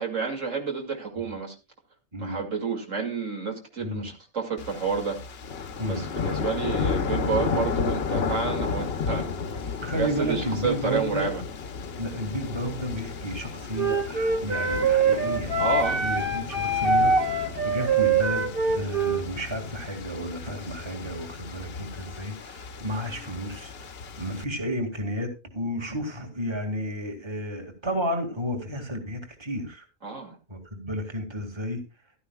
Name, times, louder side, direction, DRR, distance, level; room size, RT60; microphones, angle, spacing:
voice 1, 0.0-1.5 2.2-5.2 5.9-9.3 9.9-11.4 15.6-16.0 30.0-30.4, right 5 dB, 70° right, 2.7 m, -30 dB
voice 2, 3.8-4.1 5.8-6.1 9.5-11.3 12.0-29.9 30.5-31.8, equal, 20° right, 2.1 m, -32 dB
sound 1, 4.6-24.4, left 5 dB, 55° left, 1.0 m, -33 dB
Wind instrument woodwind instrument, 13.7-19.2, right 4 dB, 45° right, 1.9 m, -24 dB
15.0 x 12.5 x 2.3 m
omnidirectional pair, 1.4 m